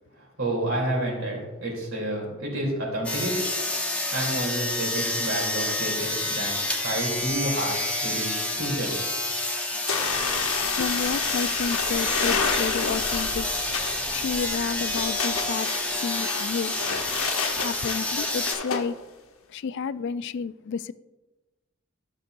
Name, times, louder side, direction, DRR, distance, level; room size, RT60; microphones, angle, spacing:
voice 1, 0.4-3.4 4.1-9.0, right 1 dB, 75° right, 3.2 m, -29 dB
sound 1, 3.0-18.5, left 2 dB, 5° left, 1.0 m, -29 dB
sound 2, 9.9-18.8, left 5 dB, 85° left, 1.0 m, -30 dB
sound 3, 10.1-15.1, equal, 50° right, 1.8 m, -43 dB
voice 2, 10.8-13.5 14.1-15.7 16.0-16.7 17.6-19.0 19.5-20.9, left 6 dB, 60° left, 0.3 m, -30 dB
13.0 x 6.6 x 2.6 m
head